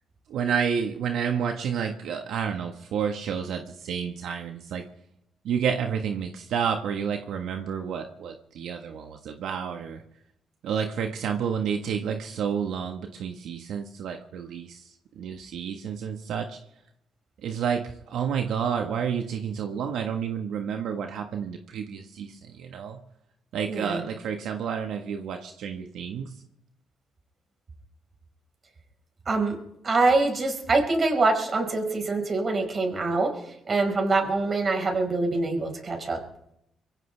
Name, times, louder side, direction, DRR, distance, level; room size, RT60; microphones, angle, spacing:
voice 1, 0.3-4.8 5.4-10.0 10.6-16.6 17.4-23.0 23.5-26.4, right 7 dB, 80° right, 4 dB, 1.5 m, -30 dB
voice 2, 23.7-24.0 29.2-29.6 29.8-33.4 33.7-36.2, right 3 dB, 40° right, 4 dB, 5.1 m, -24 dB
24.0 x 16.0 x 3.5 m, 0.79 s
cardioid pair, 90°, 0 cm